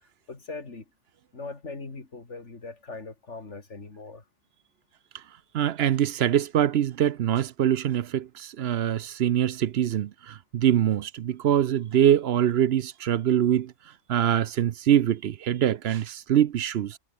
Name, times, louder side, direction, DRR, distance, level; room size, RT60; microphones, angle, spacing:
voice 1, 0.3-0.8 1.3-4.2, left 3 dB, 85° left, 3.2 m, -40 dB
voice 2, 5.5-13.7 14.1-17.0, right 10 dB, 65° right, 0.8 m, -24 dB
omnidirectional pair, 1.2 m